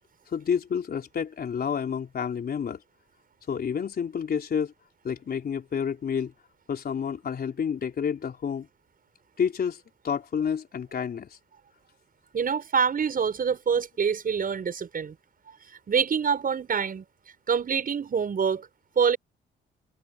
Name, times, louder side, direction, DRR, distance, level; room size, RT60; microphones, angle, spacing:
voice 1, 0.3-2.8 3.5-4.7 5.0-6.3 6.7-8.7 9.4-11.3, left 7 dB, 50° left, 4.0 m, -29 dB
voice 2, 12.3-15.2 15.9-17.0 17.5-18.7 19.0-19.2, right 6 dB, 45° right, 7.2 m, -25 dB
cardioid pair, 90°, 20 cm